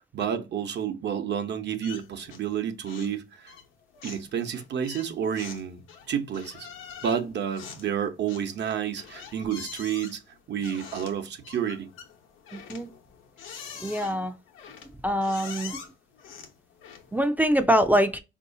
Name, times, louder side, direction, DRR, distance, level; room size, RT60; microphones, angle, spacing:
voice 1, 0.0-3.5 4.0-5.8 6.1-6.7 7.0-10.2 10.5-11.9, right 8 dB, 60° right, 0.8 m, -30 dB
sound 1, 1.8-2.6 2.8-3.2 3.5-17.3, left 7 dB, 85° left, 0.9 m, -45 dB
voice 2, 12.5-12.9 13.8-14.3 15.0-15.8 17.1-18.2, equal, 10° right, 0.4 m, -24 dB
4.4 x 2.7 x 2.6 m
cardioid pair, 90°, 20 cm